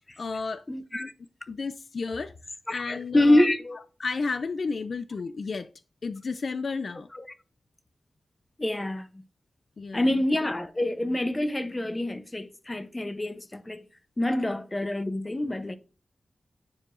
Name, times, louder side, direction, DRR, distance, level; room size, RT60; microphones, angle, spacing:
voice 1, 0.2-0.6 1.0-1.1 1.5-2.3 2.7-3.5 4.0-5.7 6.0-7.1 9.8-10.1, left 4 dB, 60° left, 0.3 m, -32 dB
voice 2, 0.7-1.1 2.7-3.8 7.1-7.3 8.6-9.1 9.9-13.8 14.2-15.8, left 1 dB, 20° left, 0.7 m, -26 dB
9.6 x 4.7 x 2.5 m
wide cardioid pair, 115°, 0 cm